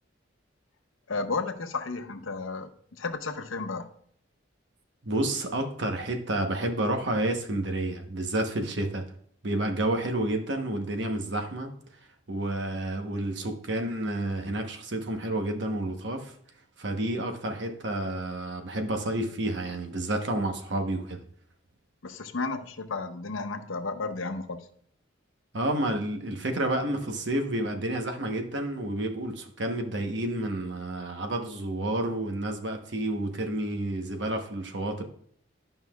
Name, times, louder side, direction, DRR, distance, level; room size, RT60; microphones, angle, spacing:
voice 1, 1.1-3.9 22.0-24.7, left 3 dB, 85° left, 8 dB, 0.8 m, -33 dB
voice 2, 5.0-9.1 9.4-11.7 12.3-16.3 16.8-21.2 25.5-35.0, right 1 dB, 65° right, 4 dB, 1.0 m, -30 dB
11.0 x 5.5 x 2.3 m, 0.63 s
head